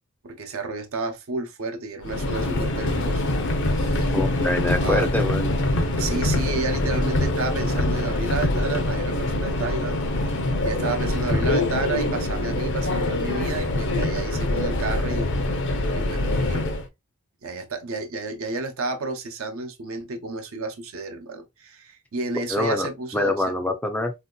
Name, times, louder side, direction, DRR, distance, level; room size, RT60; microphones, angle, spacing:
voice 1, 0.2-3.2 3.7-4.2 4.7-5.1 6.0-15.3 15.9-16.6 17.4-23.4, right 3 dB, 65° right, 0.7 m, -31 dB
Subway metro underground, 2.0-16.9, left 1 dB, 55° left, 0.6 m, -24 dB
voice 2, 4.1-5.5 22.5-22.9 23.1-24.1, left 2 dB, 5° left, 0.4 m, -24 dB
3.7 x 2.8 x 2.2 m
head